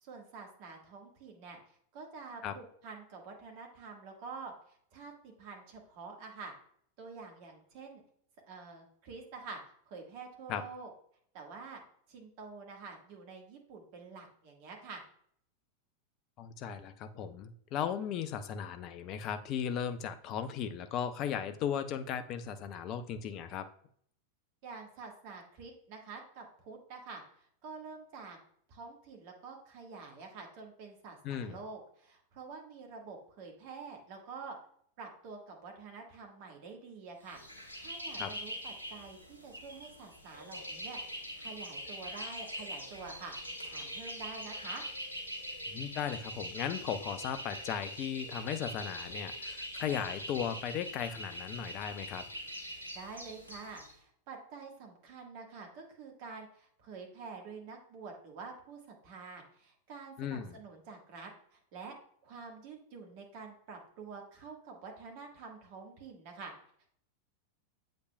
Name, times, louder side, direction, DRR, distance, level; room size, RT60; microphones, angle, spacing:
voice 1, 0.0-1.6 1.9-6.5 7.0-8.0 8.5-9.6 9.9-10.9 11.3-11.8 12.1-15.0 24.6-28.4 28.7-34.5 35.0-44.9 52.9-62.0 62.2-66.5, right 4 dB, 45° right, 2 dB, 1.5 m, -48 dB
voice 2, 16.4-23.7 31.2-31.6 38.2-38.3 45.7-52.2 60.2-60.6, left 8 dB, 35° left, 9 dB, 0.6 m, -36 dB
sound 1, 37.3-53.9, equal, 80° left, 1.9 m, -43 dB
8.1 x 5.2 x 2.2 m, 0.64 s
figure-of-eight pair, 90°, 0 cm